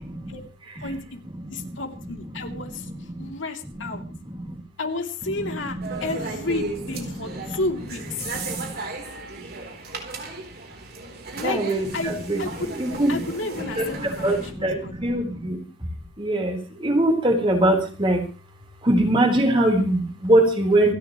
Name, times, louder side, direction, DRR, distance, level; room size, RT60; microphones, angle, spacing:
voice 1, 0.1-0.4 0.7-1.0 1.2-3.3 3.6-4.6 5.2-6.6 6.9-7.6 8.2-8.7 11.4-13.3 13.7-15.9 16.2-18.3 18.8-20.9, right 1 dB, 30° right, 1 dB, 4.2 m, -24 dB
voice 2, 0.8-1.2 1.5-2.9 3.2-4.0 4.8-8.2 11.4-11.6 11.9-12.1 12.4-12.7 13.1-14.3 14.6-15.0, left 2 dB, 85° left, 3 dB, 3.1 m, -31 dB
sound 1, 5.8-14.5, right 3 dB, 55° right, 3.8 m, -35 dB
28.0 x 11.5 x 3.2 m, 0.33 s
head